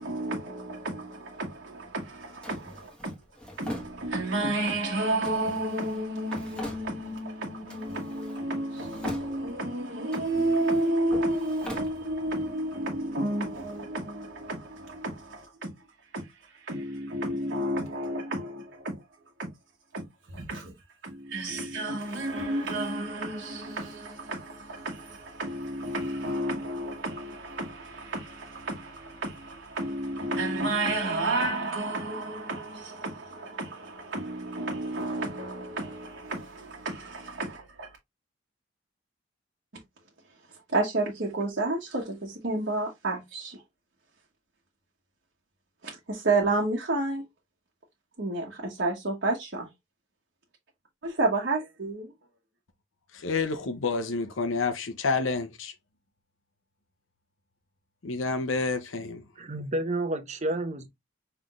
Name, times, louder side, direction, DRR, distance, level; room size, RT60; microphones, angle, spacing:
voice 1, 0.0-3.1 3.6-15.7 16.1-19.0 19.4-19.5 19.9-20.7 21.0-37.9 40.5-43.6 45.8-47.2 48.2-49.7 51.0-52.1, right 2 dB, 55° right, 1.2 m, -31 dB
Drawer open or close, 2.4-4.5 5.2-7.3 7.7-8.5 8.7-9.7 10.1-12.5, equal, 5° left, 1.4 m, -42 dB
voice 2, 53.2-55.7 58.0-59.2, left 4 dB, 75° left, 0.8 m, -29 dB
voice 3, 59.4-60.9, right 1 dB, 35° right, 0.8 m, -30 dB
5.8 x 3.3 x 2.4 m
head